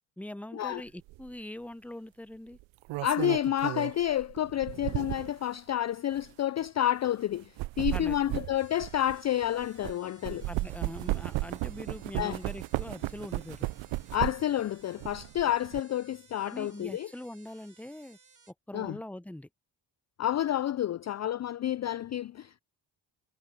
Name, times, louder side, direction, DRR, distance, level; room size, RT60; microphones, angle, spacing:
voice 1, 0.2-2.6 7.9-8.2 10.5-13.7 16.5-18.2 18.7-19.5, left 1 dB, 5° left, 0.9 m, -42 dB
sound 1, 1.1-1.3 2.6-5.4 6.1-6.3 7.3-9.9 10.2-14.6 15.0-15.8, right 19 dB, 70° right, 0.6 m, -34 dB
voice 2, 3.0-10.5 12.2-12.4 14.1-17.1 18.7-19.0 20.2-22.6, left 11 dB, 35° left, 0.4 m, -30 dB
sound 2, 8.6-18.5, right 5 dB, 40° right, 5.5 m, -60 dB
sound 3, 10.2-14.7, left 8 dB, 60° left, 3.8 m, -61 dB
hypercardioid pair, 45°, 48 cm